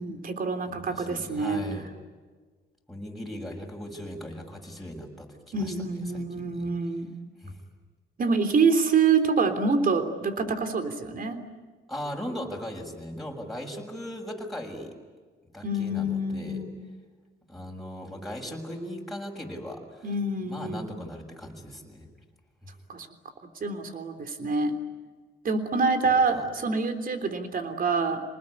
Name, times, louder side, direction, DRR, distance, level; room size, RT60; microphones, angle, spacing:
voice 1, 0.0-1.6 5.5-7.1 8.2-11.4 15.6-16.9 20.0-21.0 22.9-23.1 23.4-24.8 25.4-28.2, right 4 dB, 45° right, 7 dB, 3.4 m, -26 dB
voice 2, 0.7-1.9 2.9-6.7 7.4-7.6 11.9-14.9 15.5-16.6 17.5-20.1 20.4-22.1 22.6-22.7 26.3-26.5, equal, ahead, 0 dB, 6.8 m, -38 dB
29.0 x 20.0 x 9.8 m, 1.4 s
cardioid pair, 90°, 20 cm